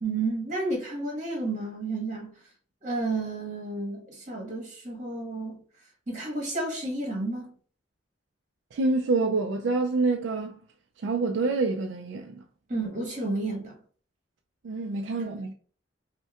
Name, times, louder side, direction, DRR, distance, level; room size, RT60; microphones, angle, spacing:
voice 1, 0.0-2.3 2.8-5.6 6.1-7.5 12.7-13.8, right 2 dB, 40° right, 1.2 m, -31 dB
voice 2, 8.7-10.6 11.0-12.4 14.6-15.5, right 3 dB, 70° right, 0.3 m, -27 dB
5.3 x 2.2 x 2.3 m
head